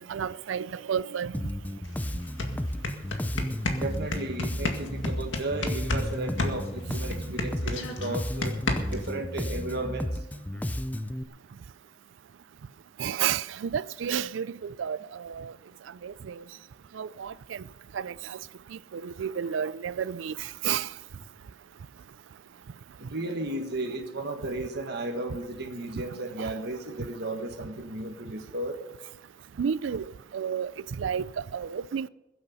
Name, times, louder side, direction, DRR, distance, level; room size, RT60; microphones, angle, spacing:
voice 1, 0.0-1.3 13.0-15.0 15.2-15.5 16.0-16.3 17.0-17.3 17.9-18.1 19.0-20.3 20.6-20.9 26.4-26.5 29.6-30.0 30.3-30.7 31.0-31.2 31.5-32.1, right 8 dB, 85° right, 0.4 m, -30 dB
Bass guitar, 1.3-11.2, left 1 dB, 10° left, 0.5 m, -33 dB
sound 1, 1.8-1.9 2.2-6.1 6.4-9.1, left 2 dB, 85° left, 2.0 m, -30 dB
voice 2, 3.7-8.5 8.9-10.1 23.0-28.8, right 2 dB, 60° right, 1.6 m, -34 dB
21.5 x 8.3 x 5.5 m
head